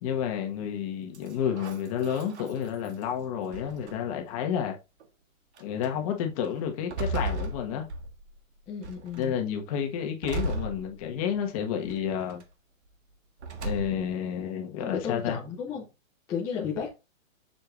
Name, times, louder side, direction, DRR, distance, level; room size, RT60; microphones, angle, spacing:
voice 1, 0.0-4.8 5.6-7.9 9.2-12.4 13.6-15.4 16.5-16.6, left 8 dB, 25° left, 1.5 m, -30 dB
sound 1, 1.1-3.0 3.5-4.2 5.0-5.1 5.6-5.9 6.4-8.4 8.8-9.3 10.2-11.4 11.8-12.4 13.4-14.2, right 2 dB, 55° right, 1.6 m, -36 dB
voice 2, 8.7-9.3 14.8-15.9 16.3-16.9, left 6 dB, 5° left, 0.6 m, -33 dB
7.0 x 6.3 x 2.5 m
hypercardioid pair, 165°, 41 cm